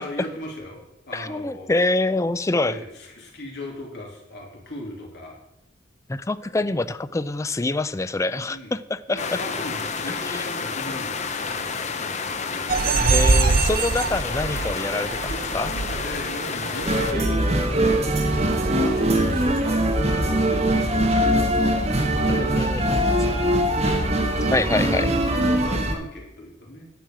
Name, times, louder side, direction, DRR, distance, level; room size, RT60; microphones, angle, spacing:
voice 1, 0.0-1.7 2.6-5.4 8.4-8.8 9.1-13.1 15.1-21.0 22.1-24.0 25.0-26.9, left 1 dB, 65° left, -1 dB, 3.1 m, -38 dB
voice 2, 1.1-2.8 6.1-9.4 10.1-10.4 13.0-15.2 15.5-15.7 22.3-22.9 24.5-25.1, left 2 dB, 15° left, 14 dB, 0.4 m, -25 dB
sound 1, 9.2-17.1, left 5 dB, 40° left, 0.9 m, -30 dB
sound 2, 12.7-19.6, right 3 dB, 50° right, 0.6 m, -25 dB
sound 3, 16.9-25.9, right 1 dB, 35° right, 1.5 m, -21 dB
10.0 x 6.4 x 7.3 m, 0.86 s
head